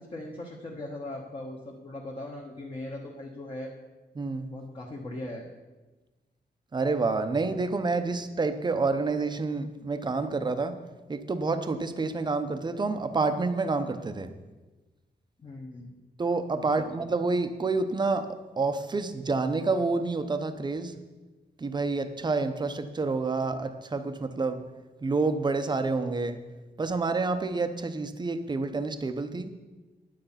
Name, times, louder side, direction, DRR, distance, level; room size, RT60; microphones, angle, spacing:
voice 1, 0.0-3.7 4.5-5.5 15.4-15.9 16.8-16.9, left 1 dB, 30° left, -2 dB, 1.2 m, -39 dB
voice 2, 4.2-4.5 6.7-10.8 11.1-14.3 16.2-20.9 21.6-24.6 25.0-26.4 26.8-29.5, right 3 dB, 25° right, 9 dB, 0.7 m, -28 dB
10.0 x 9.2 x 5.7 m, 1.2 s
wide cardioid pair, 175°, 17 cm